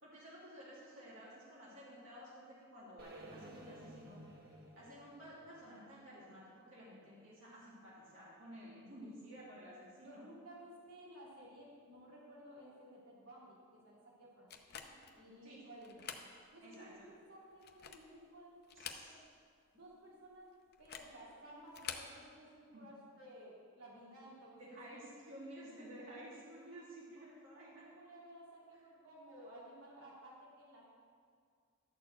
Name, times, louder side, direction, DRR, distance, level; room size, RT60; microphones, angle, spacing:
voice 1, 0.0-10.3 14.9-15.0 15.4-15.6 16.6-17.1 18.7-19.2 22.7-22.8 24.6-27.9, equal, 65° right, -7 dB, 2.6 m, -53 dB
sound 1, 3.0-7.0, right 1 dB, 45° right, 1.4 m, -56 dB
voice 2, 9.0-9.3 10.0-14.5 15.1-16.0 16.5-18.6 19.0-19.2 19.7-20.5 20.8-24.8 27.7-30.8, right 1 dB, 80° right, -6 dB, 2.6 m, -56 dB
sound 2, 14.5-15.2 15.8-16.3 16.7-16.8 17.5-18.2 18.6-19.4 19.7-19.8 20.7-21.2 21.7-22.1, left 7 dB, 45° left, 0.7 m, -47 dB
12.0 x 4.5 x 7.6 m, 2.1 s
head